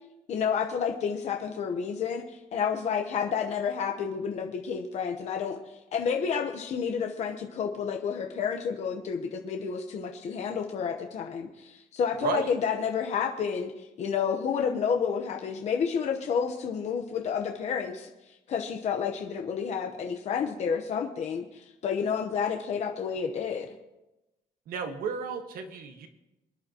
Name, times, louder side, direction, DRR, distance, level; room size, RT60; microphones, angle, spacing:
voice 1, 0.3-5.6 5.9-18.1 18.5-23.7, left 6 dB, 45° left, 3 dB, 0.9 m, -30 dB
voice 2, 12.2-12.5 24.7-26.1, right 6 dB, 70° right, 6 dB, 1.4 m, -33 dB
25.0 x 10.5 x 2.9 m, 0.98 s
cardioid pair, 175°, 16 cm